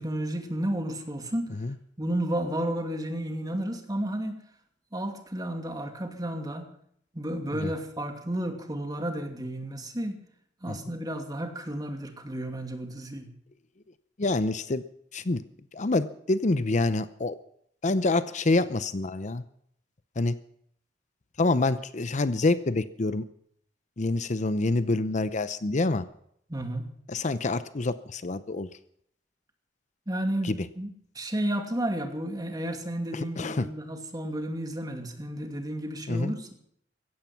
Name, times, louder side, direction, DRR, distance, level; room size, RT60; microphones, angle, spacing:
voice 1, 0.0-1.5 2.0-4.4 4.9-6.7 7.1-10.2 10.6-13.3 26.5-26.9 30.1-30.9 31.1-36.5, right 1 dB, 20° right, 5 dB, 2.6 m, -32 dB
voice 2, 14.2-14.8 15.1-15.4 15.7-17.4 17.8-19.4 20.2-20.3 21.4-23.2 24.0-26.0 27.1-28.7 30.4-30.5 33.1-33.7 36.1-36.3, left 2 dB, 40° left, 14 dB, 0.7 m, -26 dB
16.0 x 15.5 x 5.8 m, 0.68 s
head